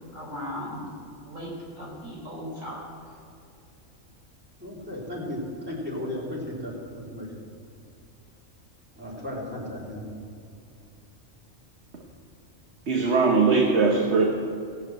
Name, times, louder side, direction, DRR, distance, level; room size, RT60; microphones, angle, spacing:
voice 1, 0.1-0.8 1.2-3.2, equal, 85° right, -5 dB, 4.9 m, -37 dB
voice 2, 4.6-6.7 7.1-7.3 9.0-10.1, left 1 dB, 10° right, -5 dB, 3.4 m, -34 dB
voice 3, 12.9-14.2, right 4 dB, 60° right, 0 dB, 1.5 m, -20 dB
18.0 x 7.5 x 7.8 m, 2.5 s
omnidirectional pair, 1.3 m